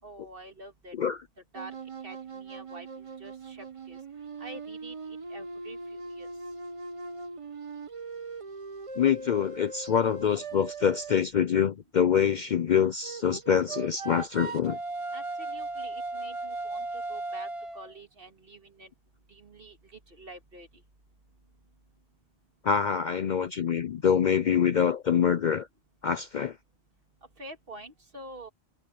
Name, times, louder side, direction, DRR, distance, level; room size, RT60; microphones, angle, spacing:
voice 1, 0.0-0.9 1.5-1.8 2.0-4.0 4.4-6.3 15.1-18.9 19.3-20.7 27.4-28.5, right 1 dB, 55° right, 2.4 m, -47 dB
sound 1, 1.5-11.2 13.0-18.0, right 3 dB, 30° right, 0.9 m, -38 dB
voice 2, 9.0-14.8 22.6-25.7 26.0-26.6, left 8 dB, 55° left, 0.6 m, -25 dB
omnidirectional pair, 1.1 m